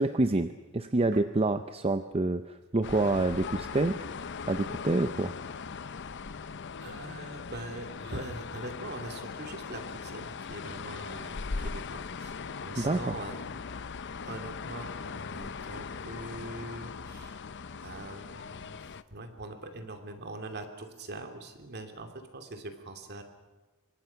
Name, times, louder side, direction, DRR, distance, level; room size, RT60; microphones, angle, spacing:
voice 1, 0.0-4.0 4.5-5.3 12.8-13.0, right 2 dB, 25° right, 10 dB, 0.7 m, -27 dB
sound 1, 2.8-19.0, left 5 dB, 55° left, 0.7 m, -39 dB
voice 2, 6.8-13.6 14.2-17.4 17.8-18.8 19.1-23.2, right 2 dB, 50° right, 6 dB, 2.7 m, -42 dB
27.0 x 23.5 x 5.8 m, 1.2 s
head